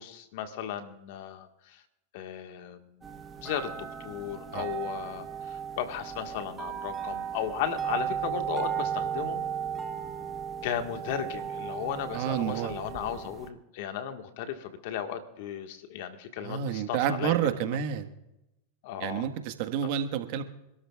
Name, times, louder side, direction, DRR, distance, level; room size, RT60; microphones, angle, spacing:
voice 1, 0.0-1.8 2.1-2.9 3.4-3.7 4.0-9.4 10.6-17.4 17.7-17.8 18.8-19.2, left 9 dB, 65° left, 6 dB, 1.6 m, -35 dB
sound 1, 3.0-13.5, right 8 dB, 20° right, 1.3 m, -35 dB
voice 2, 12.1-12.8 16.4-18.1 19.0-20.4, right 9 dB, 60° right, 8 dB, 1.4 m, -29 dB
26.5 x 13.0 x 2.4 m, 0.92 s
hypercardioid pair, 110°, 0 cm